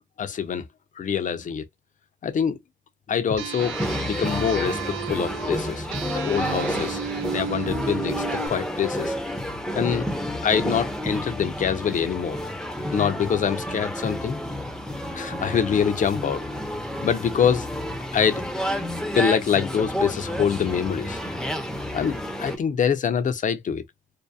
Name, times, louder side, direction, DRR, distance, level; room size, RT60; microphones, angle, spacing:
voice 1, 0.2-0.6 1.0-1.7 2.2-2.6 3.1-3.8 4.0-5.9 6.1-7.0 7.3-9.1 9.8-10.1 10.4-12.4 12.9-14.4 15.1-16.4 17.0-17.7 18.1-18.4 19.1-21.2 21.9-23.8, left 7 dB, 40° left, 0.6 m, -25 dB
sound 1, 3.4-8.5, right 8 dB, 85° right, 0.5 m, -33 dB
sound 2, 3.6-22.6, equal, 5° left, 0.7 m, -30 dB
2.7 x 2.2 x 2.2 m
cardioid pair, 90°, 20 cm